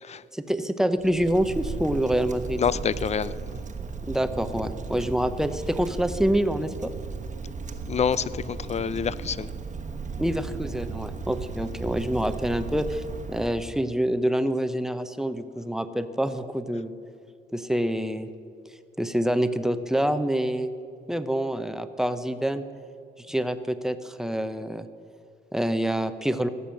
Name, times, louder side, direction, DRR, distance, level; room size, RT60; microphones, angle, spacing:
voice 1, 0.3-2.6 4.1-6.9 10.2-16.9 17.5-18.3 19.0-20.7 21.1-22.6 23.2-24.9 25.5-26.5, right 1 dB, ahead, 10 dB, 0.7 m, -26 dB
Wind, 1.0-13.8, right 4 dB, 40° right, 1.2 m, -36 dB
voice 2, 2.6-3.6 7.9-9.5, left 7 dB, 35° left, 18 dB, 0.5 m, -27 dB
16.0 x 6.9 x 7.7 m, 2.4 s
cardioid pair, 90°, 20 cm